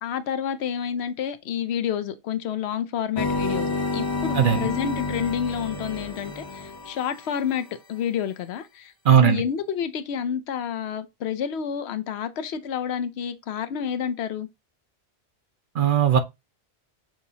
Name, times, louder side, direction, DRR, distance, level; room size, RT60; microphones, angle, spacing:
voice 1, 0.0-7.6 7.9-8.9 9.2-14.5, left 8 dB, 80° left, 0.9 m, -29 dB
sound 1, 3.2-7.4, left 3 dB, 25° left, 0.7 m, -29 dB
voice 2, 4.3-4.7 9.0-9.4 15.7-16.2, right 8 dB, 60° right, 0.7 m, -18 dB
6.1 x 2.8 x 2.7 m
omnidirectional pair, 1.1 m